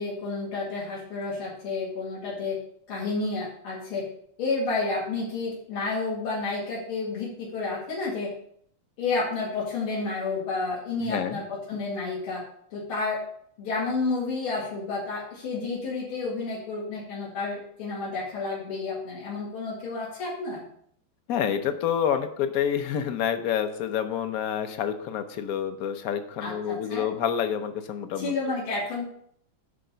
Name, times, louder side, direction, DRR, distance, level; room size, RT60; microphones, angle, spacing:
voice 1, 0.0-2.6 2.9-4.1 4.4-8.3 9.0-12.4 12.7-13.2 13.6-20.6 26.4-27.1 28.2-29.0, left 3 dB, 90° left, -6 dB, 2.9 m, -30 dB
voice 2, 11.0-11.4 21.3-28.4, left 9 dB, 60° left, 9 dB, 0.9 m, -28 dB
9.3 x 3.8 x 6.8 m, 0.65 s
omnidirectional pair, 2.3 m